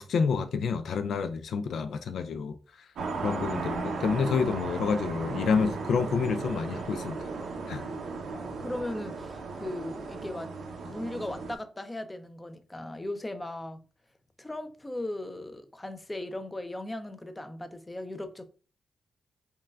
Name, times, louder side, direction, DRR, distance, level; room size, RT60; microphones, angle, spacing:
voice 1, 0.0-2.6 3.2-7.2 7.7-7.9, left 5 dB, 80° left, 0.3 m, -28 dB
sound 1, 3.0-11.6, right 4 dB, 85° right, 0.7 m, -36 dB
voice 2, 8.3-10.5 10.8-13.8 14.4-18.5, left 1 dB, 15° left, 0.5 m, -38 dB
5.5 x 2.2 x 2.3 m
cardioid pair, 75°, 0 cm